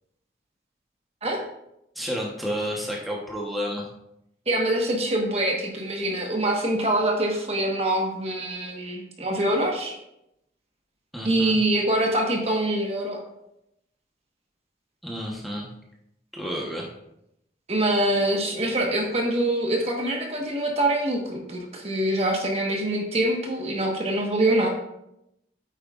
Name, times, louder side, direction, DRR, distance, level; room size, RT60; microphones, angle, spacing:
voice 1, 1.9-3.9 11.1-11.6 15.0-15.7 16.3-16.9, equal, ahead, -3 dB, 1.1 m, -30 dB
voice 2, 4.5-10.0 11.2-13.2 17.7-24.7, right 1 dB, 35° right, 0 dB, 1.4 m, -24 dB
9.1 x 8.7 x 2.5 m, 0.83 s
head